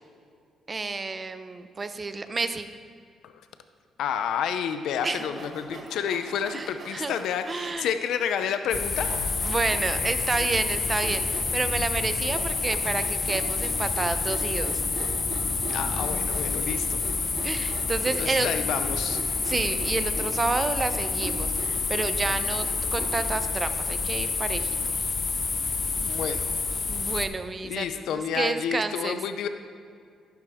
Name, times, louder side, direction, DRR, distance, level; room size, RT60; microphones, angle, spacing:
voice 1, 0.7-2.7 5.0-5.3 6.5-7.1 7.5-7.9 9.4-14.8 17.4-18.5 19.4-24.8 26.9-29.2, right 3 dB, 30° right, 10 dB, 0.7 m, -30 dB
voice 2, 4.0-9.1 15.7-17.0 18.2-19.2 26.0-26.5 27.6-29.5, left 8 dB, 80° left, 9 dB, 0.6 m, -30 dB
Sawing, 4.9-7.8 8.4-8.5 9.0-23.4, right 3 dB, 50° right, 1.6 m, -42 dB
sound 1, 8.7-27.3, left 4 dB, 35° left, 0.9 m, -28 dB
11.0 x 10.5 x 3.6 m, 2.2 s
cardioid pair, 90°, 0 cm